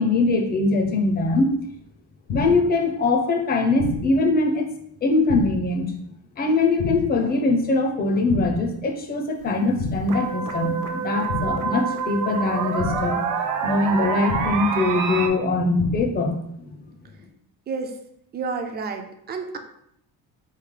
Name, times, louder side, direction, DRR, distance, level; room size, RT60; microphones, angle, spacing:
voice 1, 0.0-1.5 2.3-4.7 5.0-5.9 6.4-13.2 13.6-16.4, left 2 dB, 25° left, 3 dB, 0.5 m, -22 dB
sound 1, 2.3-2.8 3.8-4.3 5.3-5.8 6.8-7.3 8.3-8.8 9.8-10.3 11.3-11.8 12.8-13.3 14.3-14.8 15.8-16.3, left 3 dB, 80° left, 0.8 m, -29 dB
sound 2, 9.4-9.5 10.1-15.3, right 6 dB, 55° right, 0.7 m, -27 dB
voice 2, 18.3-19.6, right 4 dB, 30° right, 5 dB, 0.4 m, -30 dB
4.1 x 3.3 x 3.6 m, 0.74 s
cardioid pair, 165°, 37 cm